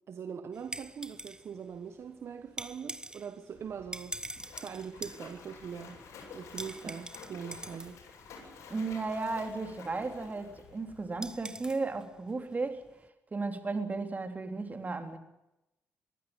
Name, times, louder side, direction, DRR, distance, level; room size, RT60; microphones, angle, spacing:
voice 1, 0.1-4.2 4.5-6.0 6.3-8.0, right 7 dB, 60° right, 1.3 m, -42 dB
sound 1, 0.5-13.1, right 2 dB, 15° right, 1.1 m, -46 dB
Splash splatter, 3.5-11.4, left 5 dB, 75° left, 7.6 m, -51 dB
voice 2, 8.7-12.8 13.3-15.2, right 3 dB, 35° right, 3.3 m, -34 dB
22.5 x 15.5 x 9.1 m
supercardioid pair, 65°, 5 cm